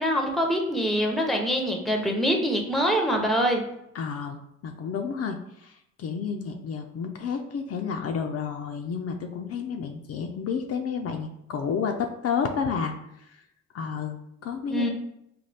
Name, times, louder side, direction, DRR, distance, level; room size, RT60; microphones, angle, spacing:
voice 1, 0.0-3.6 14.7-14.9, equal, ahead, 2 dB, 0.6 m, -24 dB
voice 2, 3.9-13.4 13.7-14.9, left 6 dB, 55° left, 4 dB, 0.4 m, -31 dB
4.1 x 2.2 x 3.3 m, 0.79 s
cardioid pair, 90°, 30 cm